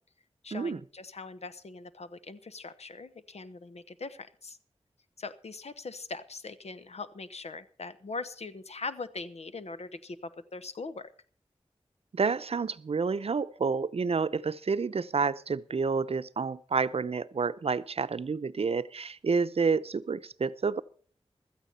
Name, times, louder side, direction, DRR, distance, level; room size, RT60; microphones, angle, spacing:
voice 1, 0.4-4.6 5.2-11.1, left 3 dB, 85° left, 1.0 m, -41 dB
voice 2, 12.1-20.8, right 5 dB, 70° right, 0.6 m, -29 dB
16.0 x 13.0 x 4.2 m
wide cardioid pair, 85°, 11 cm